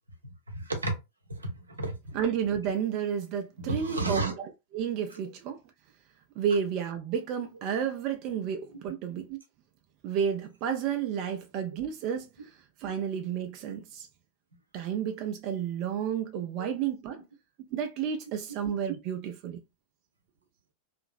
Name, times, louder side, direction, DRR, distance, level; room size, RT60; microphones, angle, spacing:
voice 1, 0.5-0.9 1.3-2.2 3.6-4.3 16.6-16.7, right 2 dB, 80° right, 0.7 m, -32 dB
voice 2, 2.1-5.6 6.4-9.4 10.0-12.3 12.8-14.1 14.7-17.2 17.7-19.6, right 8 dB, 40° right, 0.4 m, -31 dB
2.7 x 2.5 x 2.4 m
figure-of-eight pair, 90°, 0 cm